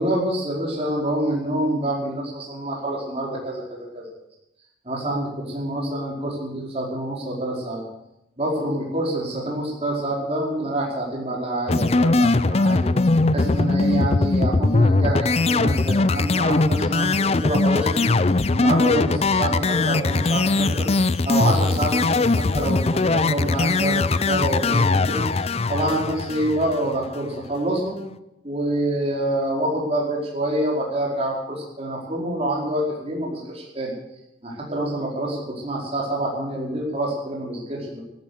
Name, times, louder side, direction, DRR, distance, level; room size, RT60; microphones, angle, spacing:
voice 1, 0.0-4.1 4.8-7.8 8.4-12.9 13.3-18.1 18.5-20.9 21.2-25.3 25.7-28.0 28.4-33.9 34.4-38.0, right 1 dB, 35° right, -3 dB, 4.7 m, -26 dB
sound 1, 11.7-27.1, left 3 dB, 35° left, 0.5 m, -20 dB
13.5 x 13.5 x 6.6 m, 0.84 s
head